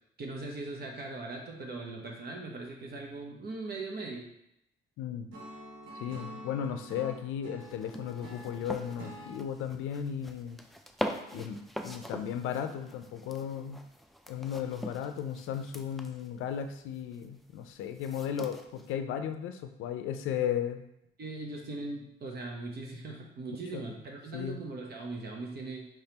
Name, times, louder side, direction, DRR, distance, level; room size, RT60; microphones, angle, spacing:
voice 1, 0.2-4.3 21.2-25.9, right 3 dB, 55° right, 0 dB, 1.0 m, -40 dB
voice 2, 5.0-5.3 5.9-10.6 11.3-13.8 14.3-20.8 23.7-23.8 24.3-24.6, left 9 dB, 85° left, 7 dB, 0.4 m, -35 dB
Acoustic guitar / Strum, 5.3-9.4, right 1 dB, 80° right, 1.1 m, -46 dB
sound 1, 7.6-18.9, equal, ahead, 0.3 m, -43 dB
4.7 x 3.3 x 2.9 m, 0.79 s
cardioid pair, 90°, 20 cm